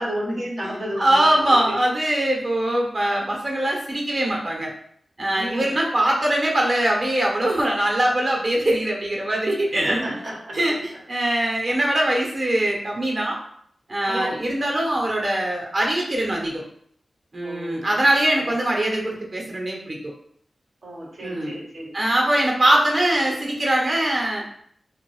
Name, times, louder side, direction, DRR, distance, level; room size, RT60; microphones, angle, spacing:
voice 1, 0.0-1.7 5.4-5.7 9.8-10.6 14.1-14.4 17.4-18.1 18.3-18.6 20.8-21.9, equal, 75° right, -4 dB, 1.1 m, -32 dB
voice 2, 1.0-4.7 5.2-10.1 10.5-13.4 13.9-16.6 17.3-20.1 21.2-21.5 21.9-24.5, right 1 dB, 50° right, -1 dB, 1.0 m, -22 dB
2.7 x 2.5 x 3.1 m, 0.66 s
cardioid pair, 45°, 0 cm